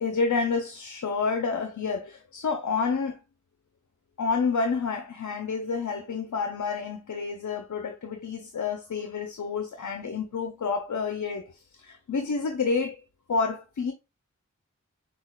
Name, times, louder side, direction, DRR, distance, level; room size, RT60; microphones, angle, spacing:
voice 1, 0.0-3.2 4.2-13.0 13.3-13.9, left 4 dB, 70° left, 0.7 m, -29 dB
6.2 x 2.4 x 2.3 m
wide cardioid pair, 55°, 30 cm